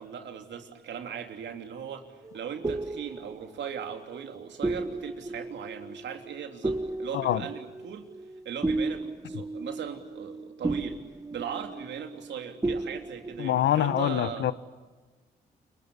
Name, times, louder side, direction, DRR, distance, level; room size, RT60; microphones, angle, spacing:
voice 1, 0.0-8.1 8.4-11.0 11.3-14.5, right 8 dB, 70° right, 3.2 m, -38 dB
sound 1, 2.2-12.4 12.6-13.5, right 2 dB, 20° right, 1.1 m, -34 dB
voice 2, 13.4-14.5, left 12 dB, 75° left, 1.0 m, -25 dB
29.0 x 23.5 x 8.4 m
hypercardioid pair, 45°, 19 cm